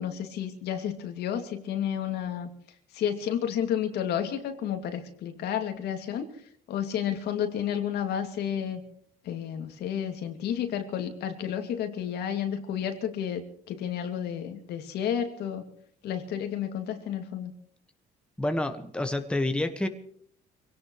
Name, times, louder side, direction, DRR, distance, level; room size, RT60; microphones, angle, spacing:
voice 1, 0.0-2.5 2.9-6.3 6.7-8.8 9.2-13.4 13.7-15.6 16.0-17.5, left 9 dB, 75° left, 5 dB, 2.6 m, -31 dB
voice 2, 18.4-19.9, left 1 dB, 5° left, 6 dB, 1.5 m, -28 dB
24.5 x 17.5 x 3.2 m, 0.64 s
cardioid pair, 110°, 17 cm